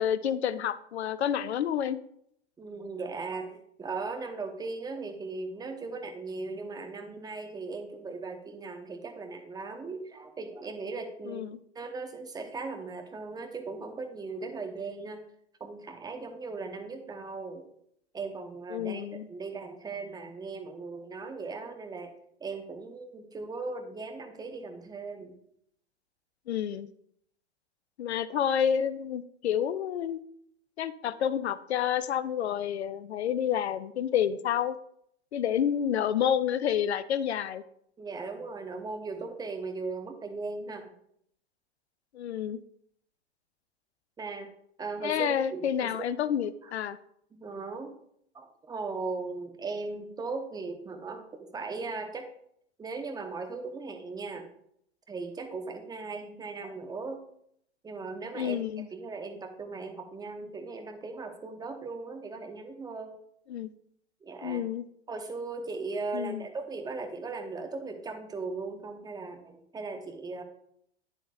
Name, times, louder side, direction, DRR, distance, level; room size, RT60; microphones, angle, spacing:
voice 1, 0.0-2.0 11.3-11.6 18.7-19.3 26.5-26.9 28.0-30.2 30.8-34.8 35.3-37.6 42.1-42.6 45.0-47.0 58.3-58.9 63.5-63.7 64.4-64.8 66.1-66.4, left 9 dB, 75° left, 15 dB, 0.6 m, -29 dB
voice 2, 2.6-11.4 11.7-15.2 15.6-17.6 18.1-22.1 22.4-25.3 38.0-40.9 44.2-44.5 44.8-46.1 46.6-46.7 47.3-47.9 48.3-52.3 52.8-54.5 55.1-57.2 57.8-58.6 58.9-63.2 64.2-64.6 65.1-70.4, right 3 dB, 10° right, 6 dB, 0.9 m, -38 dB
9.4 x 7.7 x 2.4 m, 0.70 s
figure-of-eight pair, 95°, 33 cm